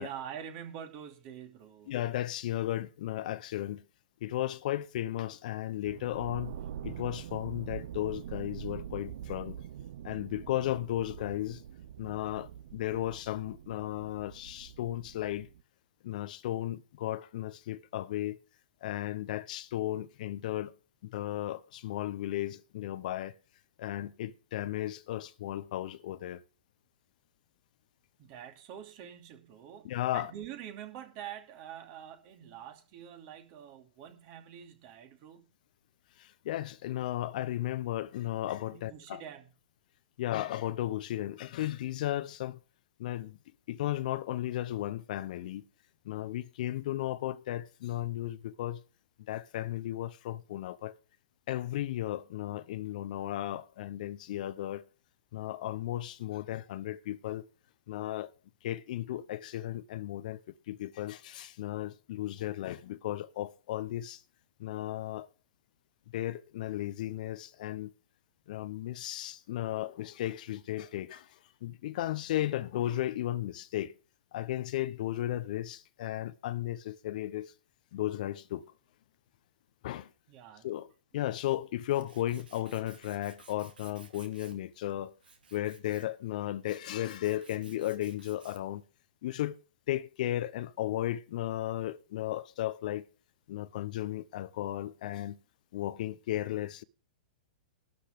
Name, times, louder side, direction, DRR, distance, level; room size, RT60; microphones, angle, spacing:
voice 1, 0.0-1.9 28.2-35.4 38.7-39.5 80.3-80.7, right 9 dB, 45° right, 2.6 m, -45 dB
voice 2, 1.9-3.8 4.2-6.5 6.8-9.6 10.0-11.6 12.0-15.5 16.0-18.4 18.8-20.7 21.0-23.3 23.8-26.4 29.8-30.3 36.2-39.2 40.2-42.6 43.0-43.4 43.7-45.6 46.0-48.8 49.3-51.0 51.5-54.8 55.3-57.5 57.9-58.3 58.6-60.4 60.7-64.2 64.6-65.3 66.1-67.9 68.5-71.3 71.6-74.0 74.3-77.5 77.9-78.6 79.8-80.1 80.6-80.9 81.1-85.1 85.5-88.8 89.2-89.6 89.9-93.1 93.5-95.4 95.7-96.8, left 14 dB, 55° left, 0.8 m, -35 dB
sound 1, 5.8-15.6, right 10 dB, 60° right, 0.8 m, -44 dB
Tools, 81.3-88.8, right 5 dB, 80° right, 2.4 m, -58 dB
12.0 x 5.6 x 8.3 m
hypercardioid pair, 115°, 5 cm